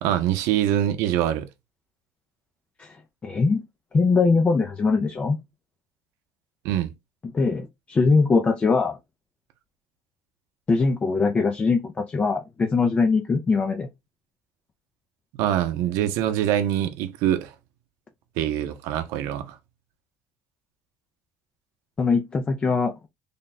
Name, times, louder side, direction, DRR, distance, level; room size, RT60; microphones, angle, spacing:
voice 1, 0.0-1.5 6.6-6.9 15.3-17.5 18.4-19.6, right 11 dB, 90° right, 0.6 m, -24 dB
voice 2, 3.2-3.6 3.9-5.4 7.3-9.0 10.7-13.9 22.0-22.9, left 4 dB, 25° left, 0.5 m, -21 dB
3.4 x 2.2 x 4.0 m
cardioid pair, 130°, 5 cm